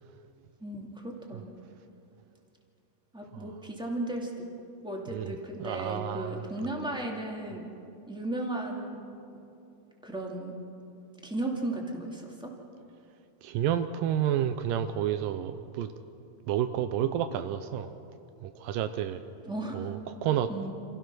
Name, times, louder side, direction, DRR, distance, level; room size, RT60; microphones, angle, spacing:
voice 1, 0.6-1.4 3.1-4.4 4.8-7.7 8.1-9.0 10.0-10.6 11.2-12.5 19.5-19.9 20.5-20.7, right 1 dB, ahead, 0 dB, 1.7 m, -35 dB
voice 2, 5.1-6.5 13.4-15.9 16.5-17.9 18.4-19.2 19.7-20.5, right 10 dB, 85° right, 10 dB, 2.3 m, -30 dB
28.0 x 16.0 x 6.2 m, 2.7 s
omnidirectional pair, 3.9 m